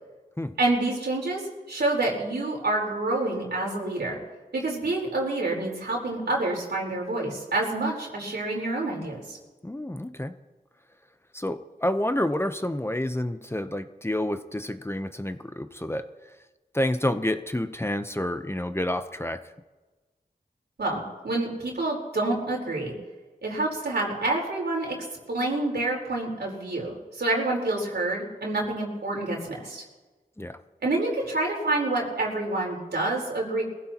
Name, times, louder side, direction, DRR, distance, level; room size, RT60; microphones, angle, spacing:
voice 1, 0.6-4.2 4.5-9.4 20.8-22.9 23.4-25.0 25.3-29.8 30.8-33.6, right 2 dB, 90° right, -2 dB, 4.2 m, -28 dB
voice 2, 9.6-10.3 11.3-16.1 16.7-19.4 30.4-30.6, left 1 dB, 15° left, 9 dB, 0.8 m, -29 dB
22.5 x 16.0 x 3.0 m, 1.2 s
cardioid pair, 45°, 17 cm